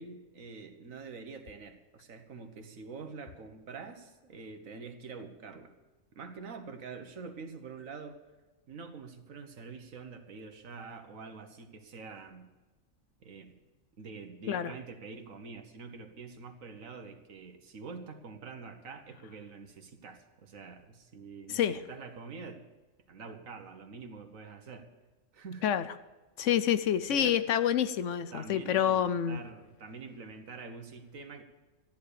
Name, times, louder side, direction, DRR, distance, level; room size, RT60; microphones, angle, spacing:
voice 1, 0.0-5.7 6.1-8.2 8.7-12.5 13.2-13.5 14.0-22.6 23.1-24.9 25.3-25.7 27.1-27.4 28.3-31.4, right 4 dB, 80° right, 7 dB, 1.7 m, -46 dB
voice 2, 21.5-21.8 25.6-25.8 26.4-29.4, left 9 dB, 70° left, 13 dB, 1.0 m, -27 dB
14.0 x 10.5 x 6.8 m, 1.1 s
omnidirectional pair, 1.4 m